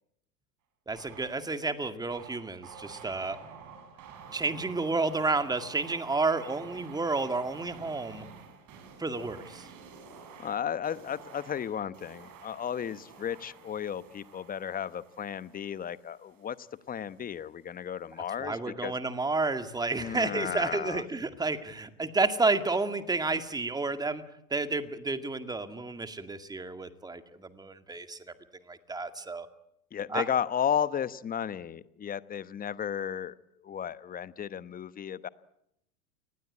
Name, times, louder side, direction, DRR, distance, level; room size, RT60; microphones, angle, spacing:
voice 1, 0.9-3.4 4.3-8.3 9.0-9.7 18.4-24.2 24.5-28.2 28.7-29.5 30.1-30.3, right 3 dB, 10° right, 9 dB, 2.1 m, -31 dB
sound 1, 0.9-1.5 2.1-16.8, right 6 dB, 40° right, 7.2 m, -50 dB
voice 2, 10.4-18.9 20.0-21.0 29.9-33.3 33.6-35.3, left 8 dB, 20° left, 16 dB, 1.0 m, -34 dB
29.5 x 20.0 x 8.6 m, 0.78 s
hypercardioid pair, 105°, 44 cm